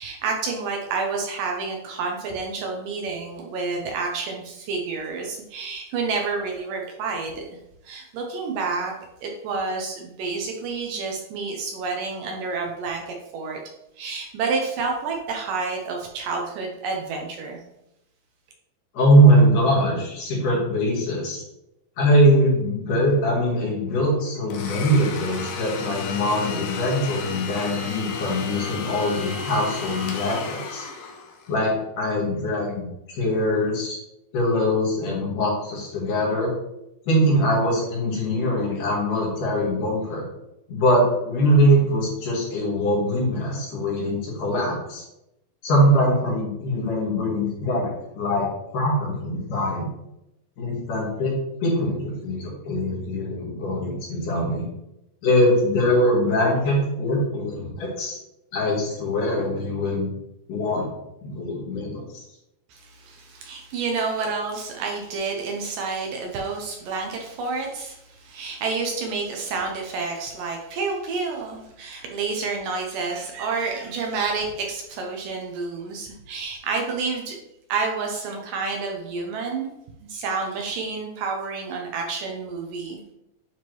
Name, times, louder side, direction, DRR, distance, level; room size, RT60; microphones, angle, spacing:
voice 1, 0.0-7.6 7.8-8.9 9.2-13.6 14.0-17.6 62.7-77.4 77.7-79.7 80.0-83.1, right 4 dB, 75° right, 1 dB, 2.2 m, -29 dB
voice 2, 18.9-21.4 22.0-30.9 31.5-32.9 33.1-34.0 34.3-36.5 37.1-40.3 40.7-45.0 45.6-47.9 48.1-48.5 48.7-49.9 50.6-51.3 51.6-54.6 55.2-58.2 58.5-60.1 60.5-60.9 61.2-62.2, equal, 65° left, -5 dB, 3.2 m, -22 dB
Domestic sounds home sounds, 24.5-31.6, left 5 dB, 85° left, 2.7 m, -33 dB
9.4 x 3.6 x 3.0 m, 0.86 s
omnidirectional pair, 4.3 m